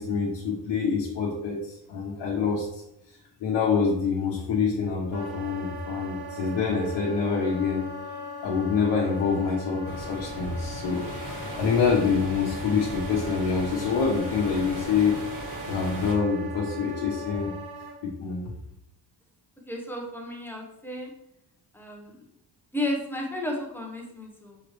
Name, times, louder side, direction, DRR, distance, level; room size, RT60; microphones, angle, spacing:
voice 1, 0.0-2.8 3.4-7.8 8.4-17.5 18.0-18.5, left 5 dB, 85° left, -3 dB, 0.9 m, -26 dB
Wind instrument woodwind instrument, 5.1-18.0, equal, 65° right, 0.8 m, -40 dB
sound 1, 9.8-16.1, equal, 50° right, 1.7 m, -38 dB
voice 2, 19.7-21.1 21.7-22.2 22.7-24.6, left 1 dB, 5° left, 0 dB, 0.7 m, -33 dB
5.6 x 3.0 x 3.1 m, 0.84 s
cardioid pair, 160°, 42 cm